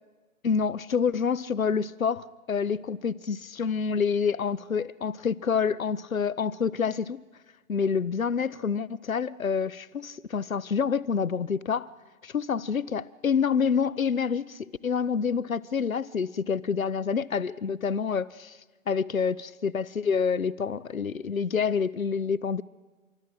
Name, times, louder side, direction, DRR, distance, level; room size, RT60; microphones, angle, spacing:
voice 1, 0.4-7.2 7.7-11.9 12.2-18.6 18.9-22.6, left 6 dB, 80° left, 0.8 m, -27 dB
26.0 x 24.0 x 6.2 m
figure-of-eight pair, 125°, 41 cm